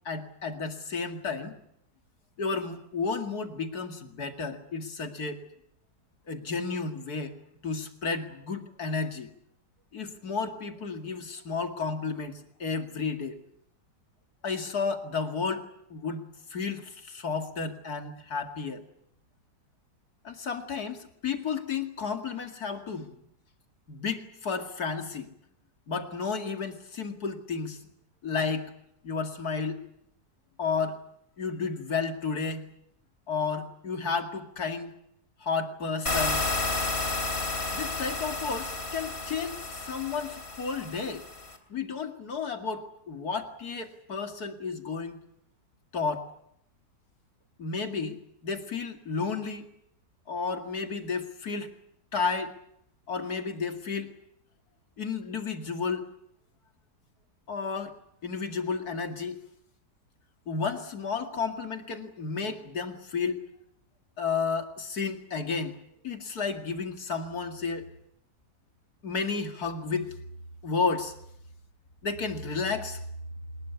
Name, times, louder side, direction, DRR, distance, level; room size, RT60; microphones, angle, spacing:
voice 1, 0.0-1.6 2.4-5.4 6.3-7.4 7.6-9.3 9.9-13.4 14.4-18.8 20.2-23.2 23.9-25.3 25.9-27.8 28.2-28.7 29.0-29.8 30.6-31.0 31.4-32.7 33.3-34.9 35.4-36.4 37.7-41.3 41.7-45.2 45.9-46.3 47.6-49.7 50.3-51.7 52.1-52.5 53.1-54.1 55.0-56.1 57.5-59.4 60.5-63.4 64.2-65.8 66.0-67.9 69.0-70.1 70.6-71.1 72.0-73.0, left 5 dB, 60° left, 6 dB, 2.8 m, -32 dB
sound 1, 36.1-41.6, left 3 dB, 35° left, 3.3 m, -32 dB
25.5 x 21.5 x 8.3 m, 0.74 s
omnidirectional pair, 1.8 m